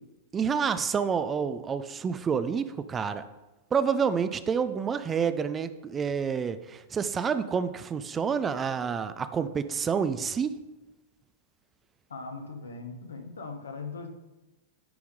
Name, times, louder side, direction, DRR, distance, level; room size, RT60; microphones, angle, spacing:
voice 1, 0.3-3.2 3.7-10.6, right 6 dB, 20° right, 12 dB, 0.4 m, -28 dB
voice 2, 12.1-14.1, left 4 dB, 75° left, 4 dB, 1.1 m, -39 dB
9.6 x 3.6 x 4.7 m, 1.1 s
figure-of-eight pair, 95°, 0 cm